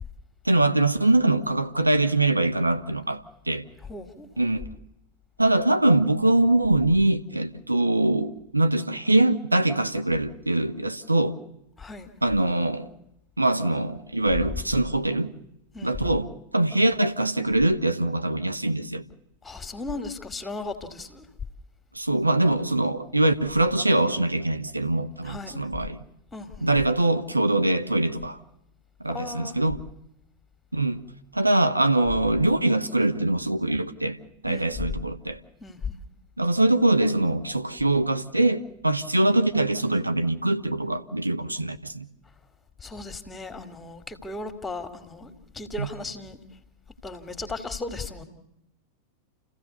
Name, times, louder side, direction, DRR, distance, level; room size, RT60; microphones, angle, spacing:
voice 1, 0.4-3.6 4.4-4.7 5.4-11.4 12.2-12.9 13.4-15.3 15.8-19.0 21.9-26.0 26.6-28.4 29.0-29.8 30.7-31.0 31.3-34.2 34.4-35.4 36.4-42.1 45.8-45.9, right 2 dB, 85° right, 1.0 m, -23 dB
voice 2, 3.9-4.3 11.8-12.1 15.7-15.9 19.4-21.3 25.2-25.6 26.3-26.7 29.1-29.6 34.5-34.7 35.6-36.0 42.8-46.4 47.0-48.2, left 3 dB, 10° left, 2.2 m, -36 dB
29.5 x 15.5 x 6.9 m
figure-of-eight pair, 90°, 0 cm